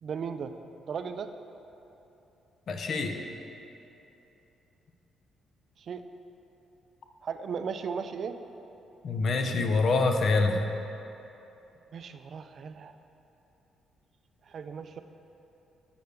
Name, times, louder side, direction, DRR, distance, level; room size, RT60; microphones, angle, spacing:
voice 1, 0.0-0.5 0.9-1.3 5.8-6.0 7.2-8.4 11.9-12.9 14.4-15.0, right 6 dB, 55° right, 9 dB, 0.3 m, -36 dB
voice 2, 2.7-3.2 9.0-10.7, left 3 dB, 55° left, 5 dB, 0.5 m, -25 dB
6.7 x 6.5 x 3.4 m, 2.9 s
cardioid pair, 90°, 0 cm